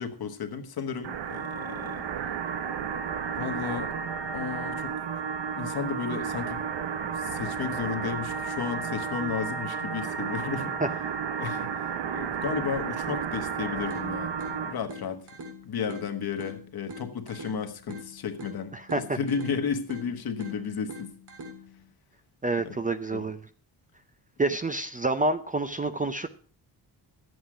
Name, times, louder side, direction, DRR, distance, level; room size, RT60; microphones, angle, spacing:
voice 1, 0.0-2.1 3.4-3.9 4.3-4.9 5.6-6.6 7.0-10.7 11.4-11.7 12.1-14.3 14.7-15.2 15.6-21.1 22.6-22.8 23.1-23.3, left 6 dB, 60° left, 1.3 m, -33 dB
sound 1, 1.0-14.8, right 6 dB, 85° right, 1.0 m, -32 dB
sound 2, 13.9-21.9, equal, 65° right, 2.1 m, -44 dB
voice 2, 18.7-19.2 22.4-23.4 24.4-26.3, right 2 dB, 20° right, 0.4 m, -28 dB
11.5 x 8.1 x 4.9 m
wide cardioid pair, 155°, 42 cm